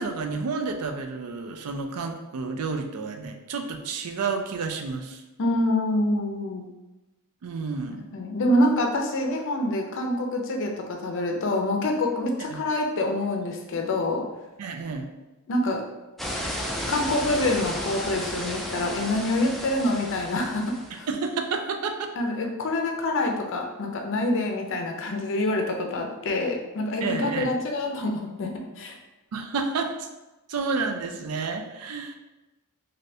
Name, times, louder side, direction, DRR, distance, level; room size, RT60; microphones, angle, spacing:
voice 1, 0.0-5.2 7.4-8.1 12.5-12.6 14.6-15.1 21.1-22.1 27.0-27.5 29.3-30.1 30.5-32.2, right 4 dB, 80° right, 5 dB, 0.4 m, -30 dB
voice 2, 5.4-6.7 8.1-14.2 15.5-15.8 16.9-21.1 22.2-29.0, left 1 dB, 55° left, 3 dB, 0.5 m, -26 dB
sound 1, 16.2-21.0, equal, ahead, 0.3 m, -33 dB
3.2 x 2.6 x 2.6 m, 1.0 s
head